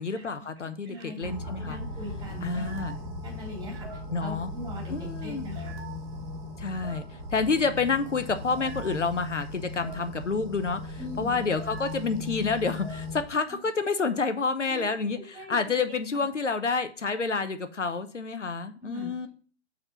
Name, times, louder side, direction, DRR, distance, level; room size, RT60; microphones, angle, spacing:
voice 1, 0.0-1.8 2.4-3.0 4.1-4.5 4.9-5.4 6.6-19.3, left 4 dB, 80° left, 10 dB, 0.9 m, -29 dB
voice 2, 0.8-3.9 4.2-5.8 11.0-11.4 14.7-14.8 15.1-15.6 18.8-19.3, left 1 dB, 10° right, -1 dB, 2.8 m, -41 dB
sound 1, 1.2-13.3, left 2 dB, 35° right, 2.1 m, -38 dB
6.6 x 4.3 x 6.0 m, 0.41 s
figure-of-eight pair, 120°, 36 cm